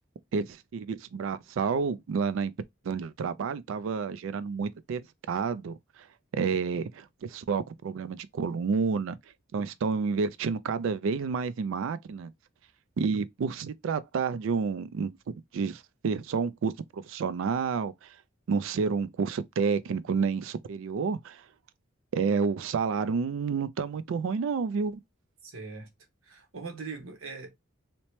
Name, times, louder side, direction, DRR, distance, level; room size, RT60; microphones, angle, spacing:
voice 1, 0.3-2.5 2.8-5.8 6.3-9.2 9.5-12.3 13.0-15.1 15.5-18.1 18.5-21.4 22.1-25.0, right 5 dB, 65° right, 0.3 m, -30 dB
voice 2, 25.4-25.9 26.2-27.6, right 4 dB, 85° right, 0.9 m, -41 dB
2.8 x 2.1 x 3.0 m
head